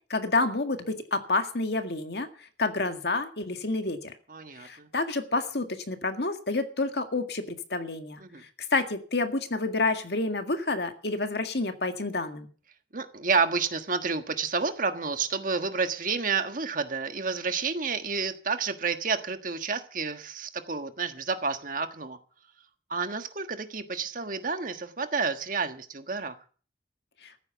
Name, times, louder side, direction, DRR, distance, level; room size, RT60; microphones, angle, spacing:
voice 1, 0.1-4.1 4.6-8.2 8.7-12.5 27.2-27.3, left 3 dB, 65° left, 7 dB, 1.9 m, -29 dB
voice 2, 4.3-4.9 8.2-8.4 12.9-22.2 22.9-26.3, right 5 dB, 50° right, 8 dB, 1.4 m, -30 dB
14.5 x 9.5 x 7.0 m, 0.41 s
head